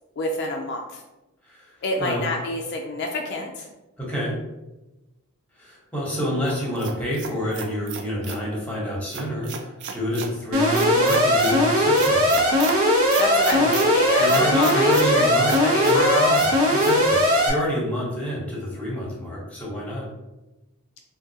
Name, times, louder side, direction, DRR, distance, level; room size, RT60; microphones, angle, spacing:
voice 1, 0.2-1.0 1.8-3.7 13.2-16.3, left 2 dB, 50° left, 1 dB, 0.3 m, -28 dB
voice 2, 4.0-4.4 5.5-12.4 13.6-13.7 14.2-20.1, equal, 5° left, -4 dB, 0.9 m, -28 dB
sound 1, 6.5-8.4 9.1-10.3 10.7-11.6 12.0-12.8 13.1-13.9 14.3-15.1 15.5-16.0 16.3-16.5 16.8-16.9, right 7 dB, 55° right, 0.4 m, -34 dB
Alarm, 10.5-17.5, equal, 80° right, 0.7 m, -19 dB
3.5 x 2.2 x 2.7 m, 1.0 s
head